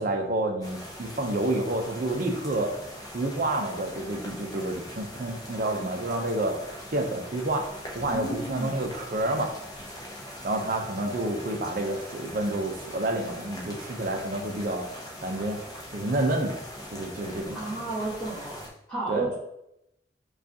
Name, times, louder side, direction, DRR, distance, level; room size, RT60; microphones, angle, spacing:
voice 1, 0.0-2.7 3.1-6.6 6.9-7.7 7.9-9.5 10.4-14.9 15.2-15.6 15.9-16.6 16.9-17.7 19.1-19.3, right 1 dB, 45° right, 2 dB, 0.5 m, -29 dB
sound 1, 0.6-18.7, equal, 20° left, 0.6 m, -42 dB
voice 2, 8.1-8.8 17.5-18.6 18.9-19.3, right 2 dB, 5° left, -10 dB, 1.4 m, -32 dB
4.7 x 2.4 x 2.8 m, 0.81 s
head